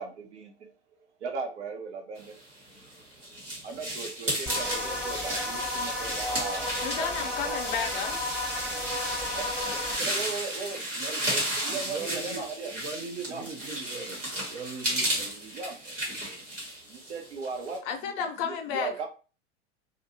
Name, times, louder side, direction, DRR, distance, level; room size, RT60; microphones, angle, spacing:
voice 1, 0.0-2.4 3.6-6.7 7.0-7.7 9.4-12.7 13.3-13.5 15.5-15.8 16.9-19.1, right 4 dB, 70° right, 3 dB, 0.8 m, -38 dB
sound 1, 2.6-17.8, right 1 dB, 90° right, 1.3 m, -34 dB
sound 2, 4.5-10.0, left 1 dB, 5° right, 0.7 m, -33 dB
voice 2, 6.8-8.2 17.8-19.1, left 7 dB, 40° left, 5 dB, 0.6 m, -32 dB
voice 3, 11.7-12.4 12.7-15.6 15.9-16.5, right 4 dB, 20° right, 2 dB, 0.3 m, -40 dB
2.6 x 2.5 x 2.6 m, 0.35 s
figure-of-eight pair, 85°, 36 cm